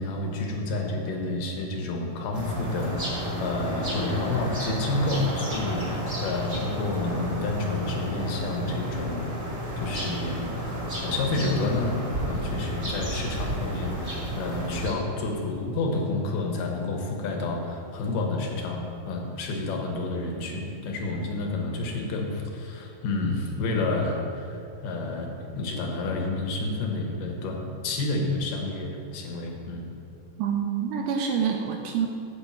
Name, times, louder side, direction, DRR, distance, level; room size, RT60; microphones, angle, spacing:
voice 1, 0.0-9.4 9.8-29.9, left 2 dB, 75° left, 1 dB, 2.5 m, -30 dB
sound 1, 2.3-14.9, equal, 30° right, 0.9 m, -31 dB
voice 2, 30.4-32.1, right 7 dB, 80° right, 2 dB, 2.0 m, -26 dB
7.9 x 4.4 x 6.9 m, 2.7 s
omnidirectional pair, 4.0 m